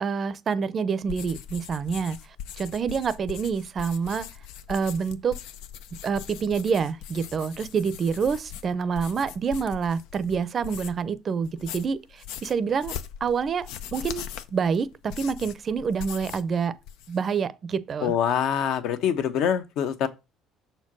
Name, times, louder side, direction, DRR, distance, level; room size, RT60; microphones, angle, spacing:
voice 1, 0.0-2.2 2.6-4.3 4.7-5.4 6.0-12.0 12.4-12.9 13.2-14.2 14.5-16.8 17.1-18.1, right 6 dB, 30° right, 0.6 m, -27 dB
sound 1, 1.0-11.1 11.4-16.5 16.8-17.3, left 9 dB, 90° left, 0.7 m, -40 dB
voice 2, 18.0-20.1, left 9 dB, 65° left, 1.0 m, -25 dB
6.6 x 4.5 x 6.1 m
cardioid pair, 145°, 0 cm